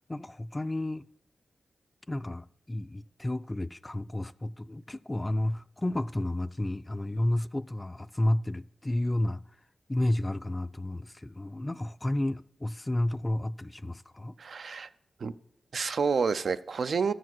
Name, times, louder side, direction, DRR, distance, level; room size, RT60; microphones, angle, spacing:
voice 1, 0.1-1.1 2.1-9.4 9.9-14.4, left 1 dB, 20° left, 0.3 m, -31 dB
voice 2, 14.4-14.9 15.2-15.3 15.7-17.1, right 5 dB, 75° right, 0.4 m, -29 dB
13.0 x 4.8 x 6.0 m
cardioid pair, 55°, 0 cm